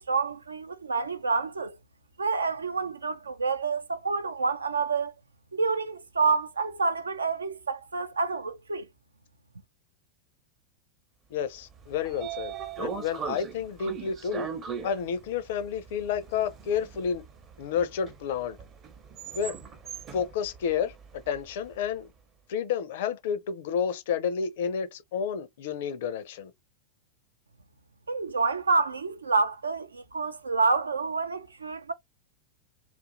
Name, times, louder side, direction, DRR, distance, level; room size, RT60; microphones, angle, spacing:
voice 1, 0.0-1.8 2.2-5.1 5.5-8.9 28.1-31.9, right 4 dB, 75° right, 0.4 m, -28 dB
voice 2, 11.3-14.5 14.8-17.2 17.6-18.6 19.3-19.6 20.1-22.1 22.5-26.5, left 7 dB, 55° left, 0.5 m, -30 dB
Train / Sliding door, 11.6-21.8, right 7 dB, 30° right, 0.6 m, -40 dB
2.6 x 2.4 x 2.5 m
figure-of-eight pair, 90°, 0 cm